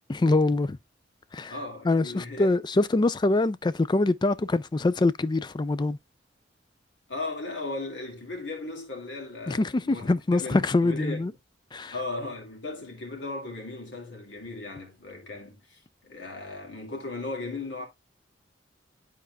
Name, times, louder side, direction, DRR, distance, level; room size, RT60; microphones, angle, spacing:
voice 1, 0.1-0.8 1.3-1.5 1.8-6.0 9.5-11.3 11.7-11.9, left 2 dB, 25° left, 0.4 m, -24 dB
voice 2, 1.5-2.5 7.1-10.1 10.4-11.3 11.9-17.9, left 2 dB, 70° left, 2.8 m, -37 dB
11.5 x 4.3 x 2.3 m
head